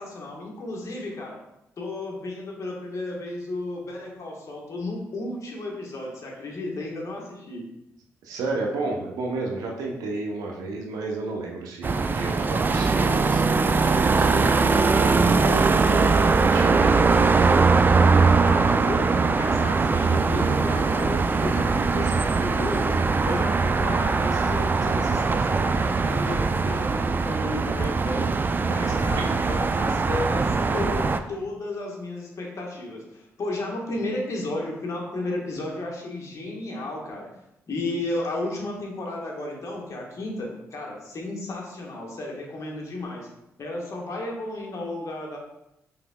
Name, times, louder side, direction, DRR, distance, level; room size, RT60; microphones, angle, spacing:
voice 1, 0.0-1.4 1.8-7.6 18.5-28.3 28.7-37.3 37.7-43.3 43.6-45.4, left 2 dB, 55° left, -1 dB, 1.3 m, -33 dB
voice 2, 8.2-17.0, right 3 dB, 80° right, 0 dB, 0.8 m, -31 dB
sound 1, 11.8-31.2, right 4 dB, 30° right, 0.3 m, -21 dB
5.6 x 3.4 x 2.3 m, 0.85 s
supercardioid pair, 50°, 6 cm